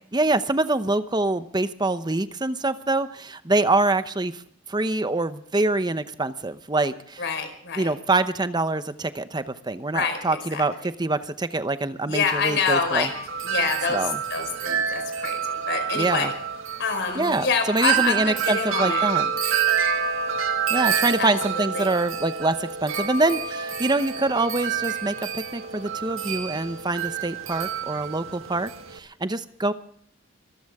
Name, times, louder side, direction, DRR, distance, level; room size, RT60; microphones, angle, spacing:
voice 1, 0.1-4.4 4.7-7.2 7.8-13.1 13.9-14.2 15.9-16.3 17.1-19.3 20.7-29.7, right 2 dB, 20° right, 11 dB, 0.8 m, -25 dB
voice 2, 7.2-7.9 9.9-10.2 10.5-10.6 12.1-13.1 13.4-14.0 14.3-16.3 16.8-19.0 21.2-21.9, left 5 dB, 60° left, 6 dB, 4.7 m, -26 dB
Wind chime, 12.1-29.0, right 7 dB, 75° right, 1.9 m, -28 dB
25.0 x 14.5 x 3.6 m, 0.63 s
head